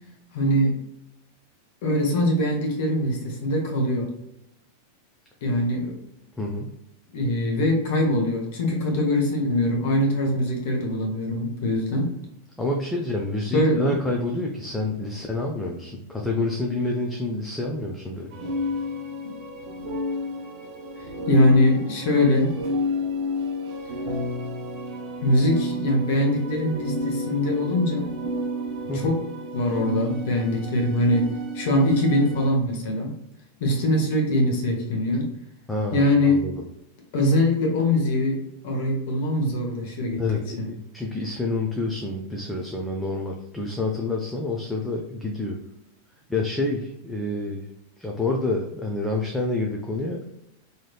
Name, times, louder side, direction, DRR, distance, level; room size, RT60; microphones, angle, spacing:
voice 1, 0.3-0.7 1.8-4.1 5.4-5.9 7.1-12.1 13.5-13.9 21.0-22.5 25.2-28.1 28.9-29.2 29.5-33.1 33.6-35.3 35.9-36.4 37.1-38.4 38.6-40.2 40.6-40.7, left 1 dB, 50° left, -1 dB, 0.9 m, -22 dB
voice 2, 6.4-6.7 12.6-18.3 28.9-29.1 35.7-36.6 40.2-45.6 46.3-47.6 48.0-50.2, left 2 dB, 5° left, -1 dB, 0.4 m, -28 dB
sound 1, 18.3-32.5, left 1 dB, 45° right, 0.5 m, -31 dB
3.0 x 2.8 x 2.2 m, 0.84 s
figure-of-eight pair, 90°, 0 cm